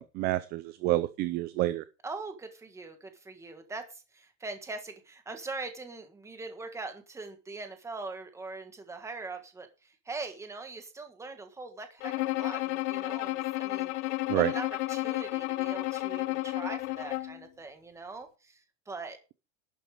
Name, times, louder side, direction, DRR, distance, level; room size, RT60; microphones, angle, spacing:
voice 1, 0.0-1.8 14.3-14.5, right 16 dB, 30° right, 14 dB, 0.5 m, -28 dB
voice 2, 2.0-19.2, right 3 dB, 10° right, 6 dB, 1.6 m, -42 dB
Bowed string instrument, 12.0-17.4, left 18 dB, 90° left, 0.9 m, -32 dB
12.0 x 8.8 x 4.9 m, 0.32 s
cardioid pair, 180°, 34 cm